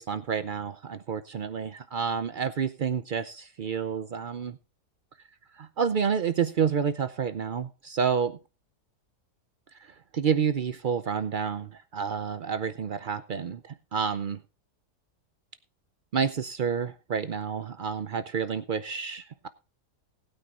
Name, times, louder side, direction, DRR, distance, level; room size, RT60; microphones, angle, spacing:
voice 1, 0.0-4.6 5.5-8.4 9.7-14.4 16.1-19.5, right 7 dB, 75° right, 12 dB, 0.4 m, -29 dB
19.5 x 9.1 x 2.5 m, 0.31 s
omnidirectional pair, 1.7 m